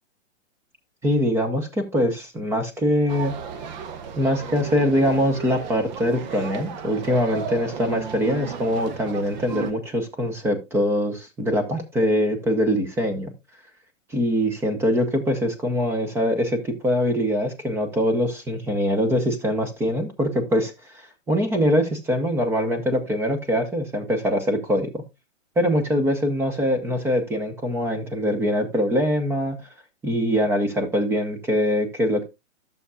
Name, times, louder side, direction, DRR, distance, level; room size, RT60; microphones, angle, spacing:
voice 1, 1.0-3.3 4.2-13.3 14.1-20.7 21.3-25.0 25.6-29.6 30.0-32.2, equal, 5° right, 6 dB, 0.9 m, -23 dB
sound 1, 3.1-9.7, right 6 dB, 35° right, 0.9 m, -35 dB
12.0 x 6.9 x 2.3 m, 0.23 s
hypercardioid pair, 150°, 37 cm